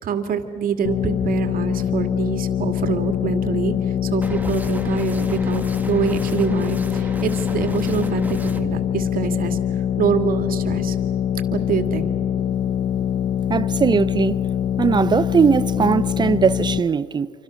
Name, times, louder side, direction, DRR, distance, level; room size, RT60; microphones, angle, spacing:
voice 1, 0.0-3.7 4.0-9.6 10.0-11.0 11.5-12.1, right 7 dB, 55° right, 2.3 m, -25 dB
sound 1, 0.8-16.8, left 9 dB, 55° left, 0.8 m, -23 dB
sound 2, 4.2-8.6, right 2 dB, 10° right, 1.7 m, -35 dB
voice 2, 13.5-14.4 14.8-17.3, right 6 dB, 25° right, 0.7 m, -19 dB
27.0 x 25.0 x 6.5 m
cardioid pair, 110°, 17 cm